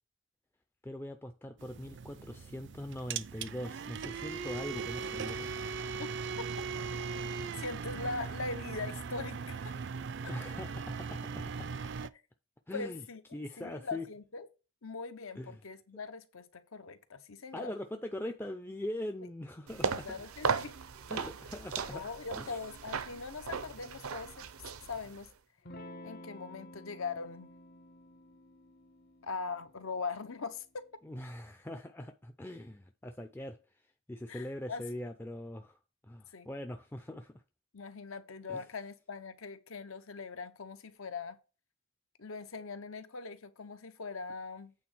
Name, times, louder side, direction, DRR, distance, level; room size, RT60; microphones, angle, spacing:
voice 1, 0.8-5.5 10.3-11.7 12.7-13.1 13.3-14.1 15.4-15.6 17.5-20.2 21.1-22.0 22.4-22.6 31.0-33.6 34.1-35.8 36.1-37.4 38.5-38.6, left 1 dB, 10° left, 0.4 m, -42 dB
sound 1, 1.6-12.1, right 5 dB, 55° right, 0.4 m, -39 dB
voice 2, 7.6-9.8 10.2-10.3 12.7-14.5 14.8-17.7 19.8-20.7 21.9-24.4 24.9-25.3 26.0-27.5 29.2-30.8 34.3-34.8 36.3-36.5 37.7-41.4 42.2-44.7, left 4 dB, 75° left, 1.0 m, -41 dB
sound 2, 19.7-25.3, right 5 dB, 85° right, 0.7 m, -37 dB
Electric guitar / Strum, 25.7-30.8, left 1 dB, 45° left, 0.8 m, -52 dB
8.6 x 3.8 x 6.0 m
head